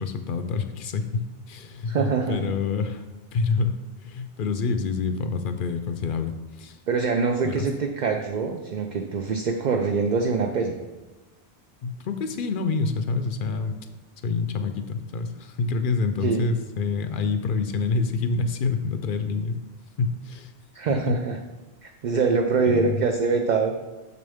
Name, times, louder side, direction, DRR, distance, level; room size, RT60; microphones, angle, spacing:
voice 1, 0.0-3.0 3.3-6.8 7.4-7.7 11.8-13.8 14.2-19.6 20.0-20.5 20.9-21.2 22.7-23.0, left 4 dB, 60° left, 8 dB, 0.6 m, -27 dB
voice 2, 1.9-2.5 6.9-10.8 16.2-16.5 20.7-21.4 21.8-23.8, right 4 dB, 60° right, 4 dB, 0.5 m, -24 dB
6.7 x 6.4 x 3.5 m, 1.1 s
omnidirectional pair, 1.2 m